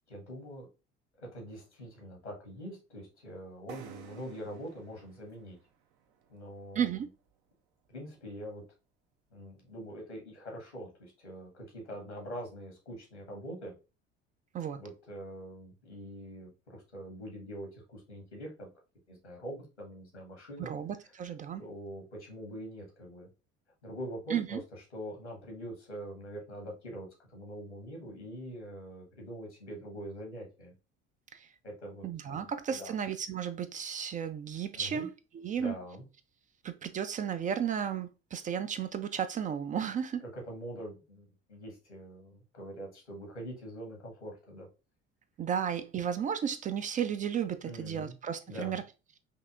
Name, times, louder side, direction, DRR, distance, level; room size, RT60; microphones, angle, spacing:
voice 1, 0.1-0.7 1.2-5.6 6.3-6.9 7.9-8.6 9.3-13.7 14.8-18.7 19.1-20.7 21.6-23.3 23.8-24.6 24.9-30.7 31.6-32.9 34.7-35.1 35.5-36.1 40.3-44.7 47.6-48.1 48.5-48.8, equal, 85° left, 1.4 m, -44 dB
sound 1, 3.7-7.3, right 9 dB, 60° right, 0.7 m, -53 dB
voice 2, 6.8-7.1 14.5-14.8 20.6-21.6 24.3-24.6 31.3-31.5 32.0-35.7 36.6-40.2 45.4-48.8, right 8 dB, 25° right, 0.3 m, -34 dB
5.4 x 2.8 x 2.4 m
figure-of-eight pair, 55°, 33 cm